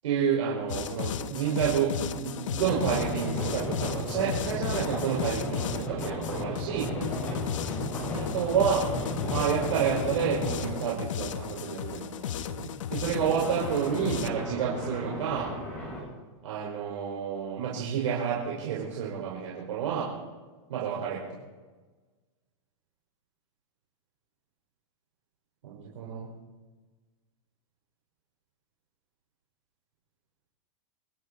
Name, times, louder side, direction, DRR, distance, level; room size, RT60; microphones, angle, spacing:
voice 1, 0.0-6.9 8.2-8.9 9.3-15.5 16.4-20.1 20.7-21.2 25.6-26.3, right 7 dB, 70° right, -4 dB, 5.0 m, -29 dB
sound 1, 0.7-14.3, left 9 dB, 70° left, 1.1 m, -35 dB
sound 2, 2.6-10.8 13.0-16.0, left 1 dB, 10° left, 7.0 m, -35 dB
29.5 x 11.5 x 4.2 m, 1.3 s
supercardioid pair, 165°, 17 cm